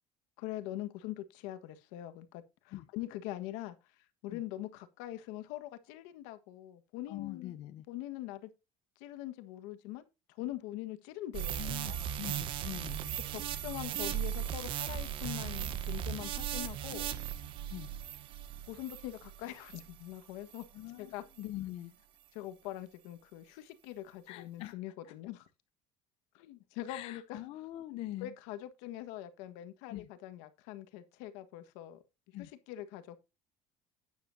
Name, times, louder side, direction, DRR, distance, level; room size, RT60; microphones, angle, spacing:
voice 1, 0.4-3.7 4.2-7.6 7.9-8.5 9.0-10.1 10.3-12.1 13.3-17.1 18.7-20.6 21.0-21.2 22.3-25.5 26.3-27.4 28.2-32.0 32.4-33.2, left 14 dB, 80° left, 1.5 m, -43 dB
voice 2, 7.1-7.8 11.6-13.2 17.7-17.9 20.7-22.1 24.3-24.8 25.0-25.1 26.9-28.3 29.9-30.1 32.3-32.5, left 15 dB, 50° left, 0.7 m, -43 dB
sound 1, 11.3-20.0 20.5-20.6, right 10 dB, 45° right, 1.0 m, -37 dB
12.0 x 9.6 x 2.7 m
cardioid pair, 165°, 12 cm